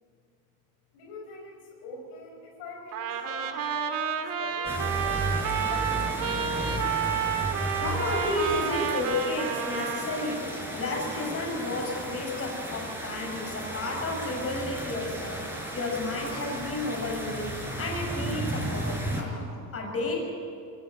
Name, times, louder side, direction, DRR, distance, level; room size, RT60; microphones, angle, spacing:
voice 1, 0.9-6.5, left 3 dB, 85° left, 1 dB, 5.4 m, -44 dB
Trumpet, 2.9-10.4, right 8 dB, 60° right, 2.3 m, -30 dB
sound 1, 4.7-19.2, right 1 dB, 5° right, 5.2 m, -34 dB
voice 2, 7.8-20.2, left 2 dB, 35° left, 1 dB, 6.7 m, -32 dB
24.0 x 16.5 x 9.0 m, 2.4 s
cardioid pair, 120°, 39 cm